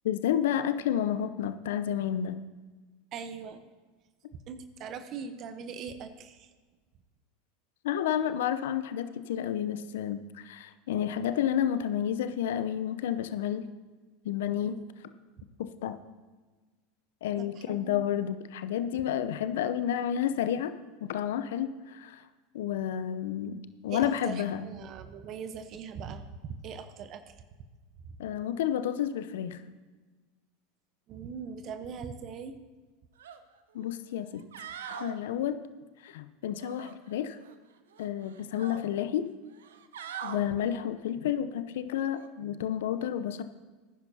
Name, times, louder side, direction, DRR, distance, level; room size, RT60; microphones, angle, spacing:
voice 1, 0.0-2.4 7.8-13.7 14.2-14.8 15.6-16.0 17.2-20.7 21.0-22.2 22.5-24.6 28.2-29.6 33.7-34.4 34.9-35.6 36.0-37.4 38.0-39.3 40.2-43.4, left 10 dB, 70° left, 11 dB, 0.7 m, -30 dB
voice 2, 3.1-3.7 4.5-6.5 14.6-15.0 17.4-18.1 23.9-27.4 28.0-28.2 31.1-32.6 40.3-40.5, right 6 dB, 45° right, 10 dB, 0.9 m, -41 dB
sound 1, 33.2-33.4 33.8-33.9 34.4-35.2 36.6-37.6 37.9-38.8 39.5-40.4 42.1-42.3, right 7 dB, 75° right, 0.8 m, -42 dB
19.5 x 10.5 x 2.8 m, 1.3 s
hypercardioid pair, 85°, 0 cm